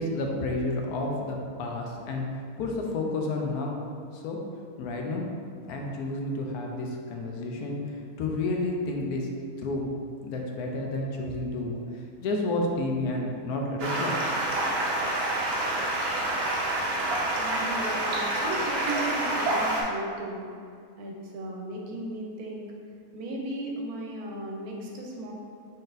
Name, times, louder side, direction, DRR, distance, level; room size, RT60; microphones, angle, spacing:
voice 1, 0.0-2.2 2.6-3.8 4.1-4.4 4.8-5.3 5.7-9.3 9.6-9.9 10.2-14.1, left 2 dB, 80° left, 0 dB, 1.1 m, -30 dB
Stream, 13.8-19.8, right 1 dB, 55° right, 0.7 m, -27 dB
voice 2, 17.4-20.5 21.0-22.7 23.1-25.3, right 1 dB, 80° right, -1 dB, 1.1 m, -36 dB
3.9 x 3.9 x 2.5 m, 2.4 s
omnidirectional pair, 1.6 m